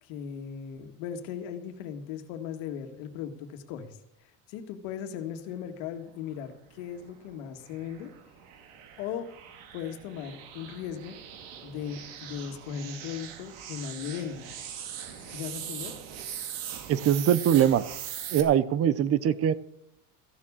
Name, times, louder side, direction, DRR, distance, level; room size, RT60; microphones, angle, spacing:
voice 1, 0.0-8.1 9.0-9.3 9.7-11.2 11.6-14.5 15.3-15.9, left 8 dB, 80° left, 7 dB, 1.9 m, -38 dB
sound 1, 6.9-18.4, right 9 dB, 75° right, 2.3 m, -41 dB
voice 2, 16.9-17.9 18.3-19.5, right 10 dB, 35° right, 18 dB, 0.7 m, -22 dB
14.5 x 7.2 x 8.6 m, 0.77 s
cardioid pair, 135°, 39 cm